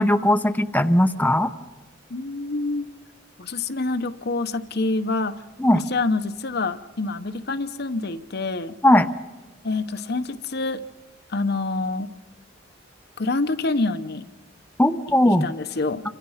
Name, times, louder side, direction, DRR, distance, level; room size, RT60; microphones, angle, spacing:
voice 1, 0.0-1.5 5.6-5.8 8.8-9.1 14.8-15.4, left 1 dB, 10° left, 7 dB, 0.8 m, -18 dB
voice 2, 2.1-2.9 3.4-5.3 5.7-8.7 9.6-10.8 11.3-12.1 13.2-14.2 15.3-16.0, left 3 dB, 55° left, 10 dB, 1.0 m, -26 dB
28.0 x 25.5 x 5.7 m, 1.1 s
head